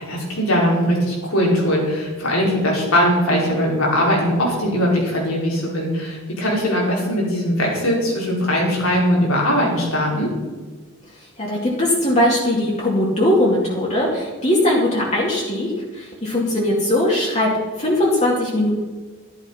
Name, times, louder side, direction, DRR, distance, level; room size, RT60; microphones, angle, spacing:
voice 1, 0.0-10.3, equal, 85° left, -3 dB, 5.1 m, -20 dB
voice 2, 11.4-17.5 17.8-18.7, left 1 dB, 35° left, -4 dB, 2.4 m, -20 dB
12.0 x 11.0 x 5.7 m, 1.3 s
head